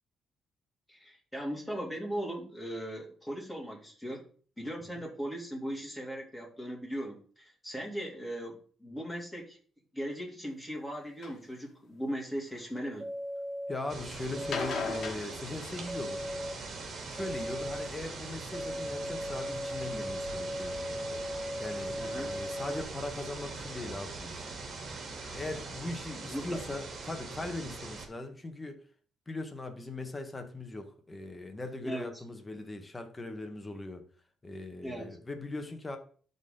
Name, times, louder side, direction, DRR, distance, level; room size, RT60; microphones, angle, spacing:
voice 1, 0.9-4.2 4.6-9.6 9.9-13.1 22.0-22.3 26.3-26.6 31.8-32.1 34.8-35.2, equal, 5° left, -3 dB, 3.1 m, -38 dB
sound 1, 11.2-11.4 12.1-12.8 14.3-16.3 17.9-18.5 19.2-19.3 19.8-19.9 20.3-20.4 20.5-20.6, left 5 dB, 60° left, 1.7 m, -39 dB
sound 2, 13.0-13.7 14.3-15.1 15.9-16.5 17.2-17.9 18.5-22.8, equal, 20° right, 0.6 m, -37 dB
voice 2, 13.7-16.3 17.1-21.2 21.6-24.5 25.3-28.8 29.3-34.0 34.4-36.0, left 2 dB, 20° left, 6 dB, 1.4 m, -40 dB
sound 3, 13.9-28.1, right 3 dB, 55° right, 2.2 m, -42 dB
12.0 x 4.1 x 4.0 m, 0.43 s
cardioid pair, 90°, 0 cm